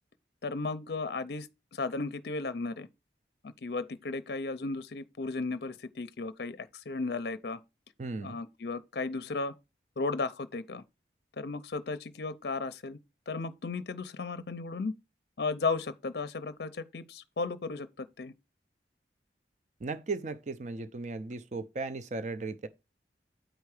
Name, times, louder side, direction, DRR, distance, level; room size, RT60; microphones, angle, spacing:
voice 1, 0.4-2.9 3.4-7.6 8.2-9.5 10.0-10.8 11.4-13.0 13.3-14.9 15.4-18.3, left 3 dB, 60° left, 0.5 m, -35 dB
voice 2, 8.0-8.4 19.8-22.7, right 3 dB, 40° right, 0.5 m, -36 dB
9.1 x 4.6 x 4.8 m
head